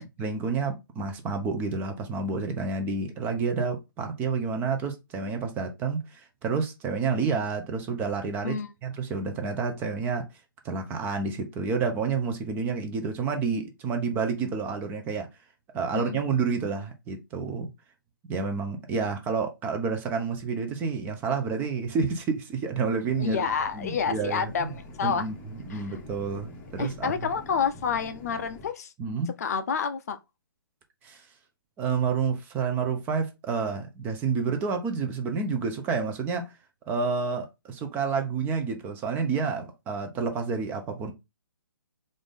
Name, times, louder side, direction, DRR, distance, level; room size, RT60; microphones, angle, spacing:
voice 1, 0.0-10.3 10.6-15.3 15.7-17.7 18.3-23.4 23.7-24.7 25.0-27.1 29.0-29.3 31.0-31.2 31.8-36.5 36.9-41.1, right 5 dB, 15° right, 0.5 m, -29 dB
sound 1, 23.0-28.7, left 2 dB, 15° left, 0.7 m, -46 dB
voice 2, 23.2-24.7 25.0-25.3 25.7-25.8 26.8-28.9 29.4-30.2, left 6 dB, 45° left, 0.4 m, -28 dB
3.7 x 2.6 x 3.6 m
figure-of-eight pair, 135°, 12 cm